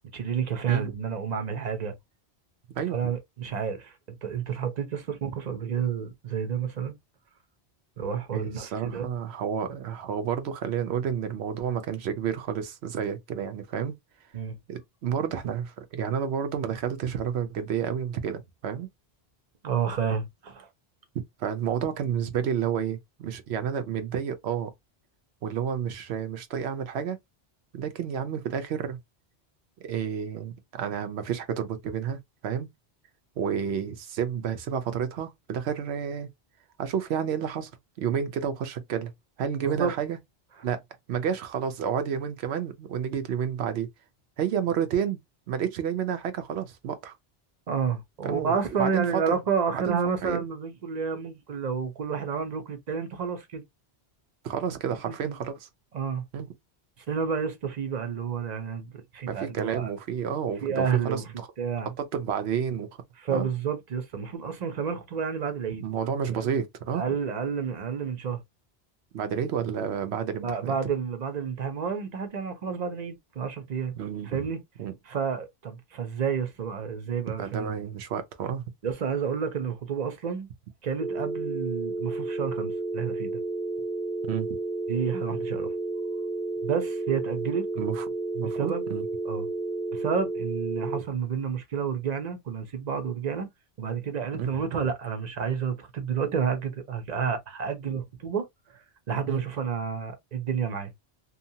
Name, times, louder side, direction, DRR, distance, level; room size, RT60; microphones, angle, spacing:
voice 1, 0.1-1.9 2.9-6.9 8.0-9.1 14.3-14.5 19.6-20.7 39.6-39.9 47.7-53.6 55.2-55.4 55.9-56.2 57.1-59.9 60.6-61.2 61.6-61.9 63.2-65.8 66.3-66.5 66.9-68.4 70.4-73.9 74.2-74.6 75.1-77.7 78.8-80.5 80.8-83.4 84.9-85.7 86.6-87.7 88.4-88.8 89.2-89.5 89.9-93.5 93.8-98.8 99.1-100.9, right 6 dB, 45° right, 0.7 m, -30 dB
voice 2, 2.8-3.1 8.3-13.9 14.7-18.9 21.4-24.7 25.4-27.2 27.7-29.0 29.8-32.7 33.4-36.3 36.8-37.7 38.0-39.1 39.4-40.2 40.6-40.8 41.1-43.9 44.4-45.2 45.5-47.1 48.2-49.4 49.7-50.4 54.4-55.7 56.3-56.5 59.3-61.5 62.0-62.9 63.3-63.5 65.7-67.1 69.1-70.8 74.0-74.5 74.8-74.9 77.4-78.6 84.3-84.6 87.8-88.1 88.3-89.1 94.4-94.8 99.3-99.4, right 8 dB, 80° right, 0.9 m, -30 dB
sound 1, 81.0-91.0, right 2 dB, 10° left, 0.3 m, -31 dB
2.8 x 2.1 x 2.7 m
omnidirectional pair, 1.1 m